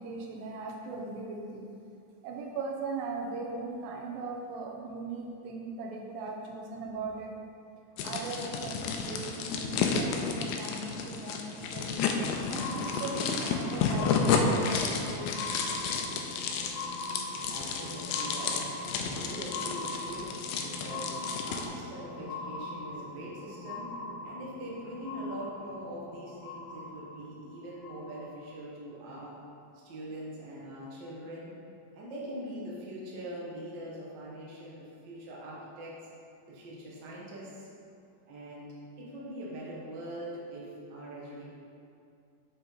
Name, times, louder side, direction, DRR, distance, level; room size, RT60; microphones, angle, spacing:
voice 1, 0.0-1.7 2.2-7.3 8.0-12.0 12.5-15.3, right 3 dB, 85° right, 0 dB, 2.6 m, -39 dB
sound 1, 8.0-21.7, left 5 dB, 90° left, 2.3 m, -31 dB
sound 2, 11.7-28.5 29.3-29.4, left 2 dB, 60° left, 2.0 m, -41 dB
voice 2, 17.5-18.6 18.9-20.3 20.6-24.0 24.2-29.3 29.8-31.5 31.9-36.0 36.5-37.7 38.3-41.4, right 1 dB, 65° right, -5 dB, 1.0 m, -42 dB
6.9 x 5.4 x 4.0 m, 2.5 s
omnidirectional pair, 4.0 m